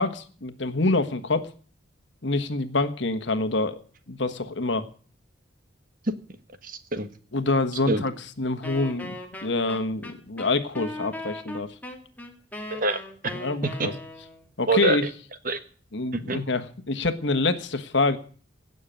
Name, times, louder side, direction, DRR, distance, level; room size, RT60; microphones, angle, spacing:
voice 1, 0.0-1.5 2.2-3.8 4.1-4.9 7.3-8.1 8.4-9.1 9.4-11.7 13.3-13.9 14.6-15.0 15.9-18.2, left 3 dB, 65° left, 9 dB, 1.4 m, -26 dB
voice 2, 6.6-7.1 7.9-8.0 12.7-13.3 13.6-13.9 14.7-15.0 15.4-15.6 16.1-16.4, right 2 dB, 45° right, 10 dB, 1.4 m, -26 dB
Wind instrument woodwind instrument, 8.6-14.5, left 1 dB, 10° left, 2.0 m, -38 dB
17.0 x 6.8 x 9.1 m, 0.43 s
head